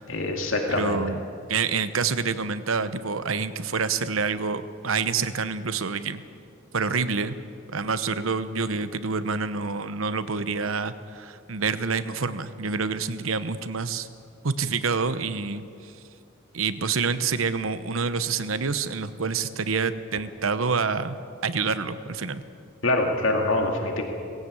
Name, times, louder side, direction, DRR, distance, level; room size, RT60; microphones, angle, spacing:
voice 1, 0.1-1.0 22.8-24.0, left 2 dB, 75° left, 2 dB, 2.3 m, -24 dB
voice 2, 0.7-1.2 1.5-6.2 6.7-7.4 7.7-14.1 14.4-15.9 16.5-21.2 21.4-22.4, right 5 dB, 85° right, 12 dB, 1.0 m, -27 dB
19.5 x 16.0 x 8.4 m, 2.4 s
head